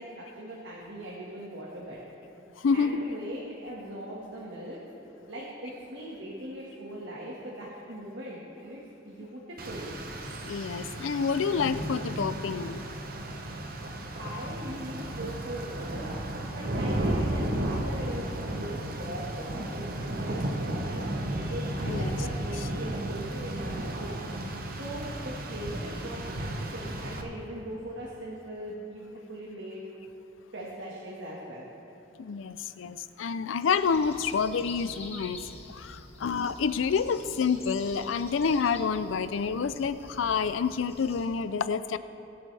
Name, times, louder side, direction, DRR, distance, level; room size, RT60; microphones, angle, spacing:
voice 1, 0.0-2.0 2.7-4.8 5.3-8.8 9.0-9.9 14.2-16.1 16.5-24.2 24.8-29.8 30.5-31.7, right 1 dB, 75° right, -5 dB, 1.7 m, -40 dB
voice 2, 2.6-3.0 10.4-12.8 21.9-22.2 32.2-35.4 35.7-42.0, left 5 dB, 90° left, 13 dB, 0.4 m, -28 dB
Rain, 9.6-27.2, right 1 dB, 50° right, 0.9 m, -34 dB
sound 1, 33.6-41.2, left 2 dB, 30° left, 1.3 m, -47 dB
23.0 x 7.8 x 3.4 m, 3.0 s
head